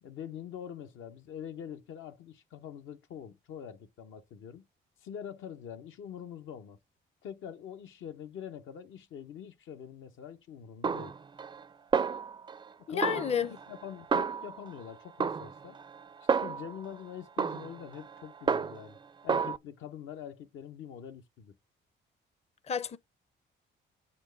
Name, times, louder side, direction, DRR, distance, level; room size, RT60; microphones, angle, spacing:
voice 1, 0.0-4.7 5.0-6.8 7.2-11.1 12.9-15.8 16.2-19.0 19.2-21.5, left 9 dB, 80° left, 0.8 m, -44 dB
Snare drum, 10.8-11.7 11.9-12.7 13.0-14.8 15.2-16.9 17.4-19.0 19.3-19.6, right 5 dB, 25° right, 0.4 m, -31 dB
voice 2, 12.9-13.5 22.7-23.0, left 7 dB, 30° left, 0.5 m, -30 dB
8.4 x 4.3 x 6.7 m
cardioid pair, 90°, 20 cm